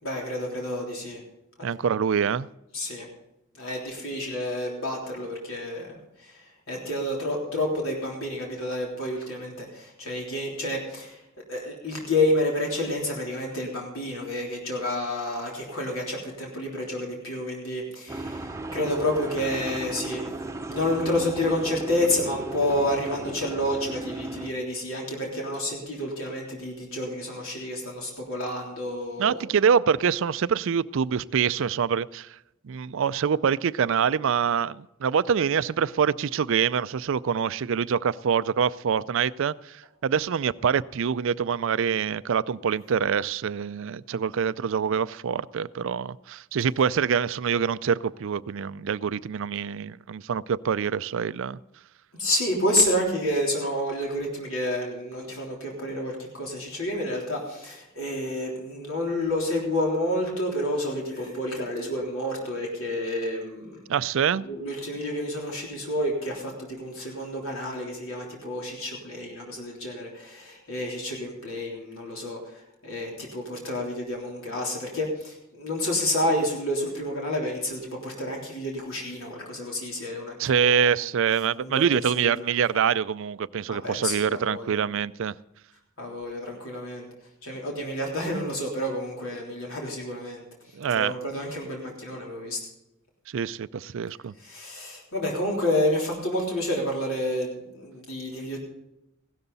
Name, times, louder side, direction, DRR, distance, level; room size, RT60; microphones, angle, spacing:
voice 1, 0.0-1.2 1.6-1.7 2.7-3.1 3.5-11.2 11.5-20.3 20.7-29.4 52.2-63.8 64.3-80.8 81.6-82.6 83.7-84.8 86.0-87.1 87.4-90.4 90.9-92.6 94.4-98.6, left 1 dB, 75° left, 3.5 m, -29 dB
voice 2, 1.6-2.5 29.2-32.3 32.6-51.6 63.9-64.5 80.4-85.3 90.8-91.2 93.3-94.3, right 7 dB, 65° right, 0.4 m, -25 dB
sound 1, 18.1-24.5, right 2 dB, 15° right, 0.8 m, -36 dB
16.0 x 12.5 x 4.1 m
head